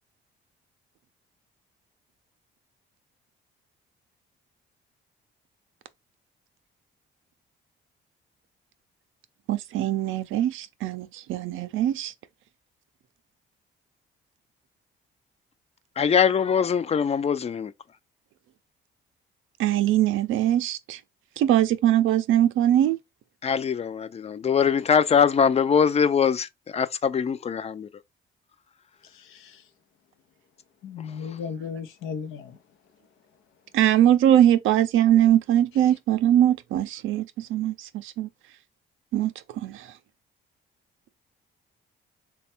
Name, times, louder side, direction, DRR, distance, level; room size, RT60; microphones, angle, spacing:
voice 1, 9.5-12.1 19.6-21.0 21.4-23.0 33.7-38.3 39.1-39.9, right 11 dB, 80° right, 0.5 m, -22 dB
voice 2, 16.0-17.7 23.4-27.9, left 7 dB, 30° left, 0.4 m, -22 dB
voice 3, 29.0-29.6 30.8-32.6, left 6 dB, 90° left, 0.7 m, -36 dB
3.4 x 2.3 x 4.2 m
cardioid pair, 90°, 20 cm